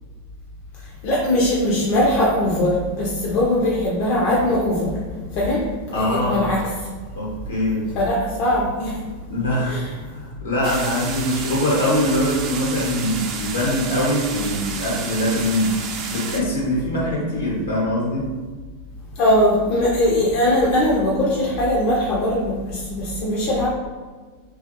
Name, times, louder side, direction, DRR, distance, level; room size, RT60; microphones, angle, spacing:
voice 1, 1.0-5.0 5.3-5.6 5.9-6.6 7.9-9.0 9.7-9.8 10.7-10.8 19.2-23.7, left 1 dB, 50° left, -5 dB, 0.6 m, -20 dB
voice 2, 5.9-6.5 7.1-7.9 9.3-18.3, left 1 dB, 80° left, -4 dB, 1.0 m, -23 dB
sound 1, 10.6-16.4, right 5 dB, 40° right, 0.4 m, -31 dB
2.5 x 2.3 x 2.9 m, 1.4 s
hypercardioid pair, 90°, 0 cm